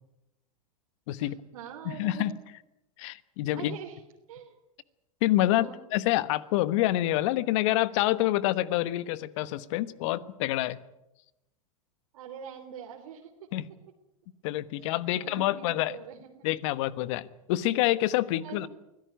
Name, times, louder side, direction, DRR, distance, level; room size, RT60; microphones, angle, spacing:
voice 1, 1.2-2.3 3.5-4.0 4.3-4.6 5.5-5.8 12.1-13.3 14.8-14.9 15.1-16.5 18.4-18.7, right 8 dB, 70° right, 1 dB, 3.3 m, -44 dB
voice 2, 1.8-2.3 3.0-3.8 5.2-10.8 13.5-13.6 14.4-15.9 16.4-18.7, left 15 dB, 55° left, 16 dB, 1.2 m, -27 dB
24.5 x 16.5 x 9.3 m, 0.93 s
hypercardioid pair, 100°, 19 cm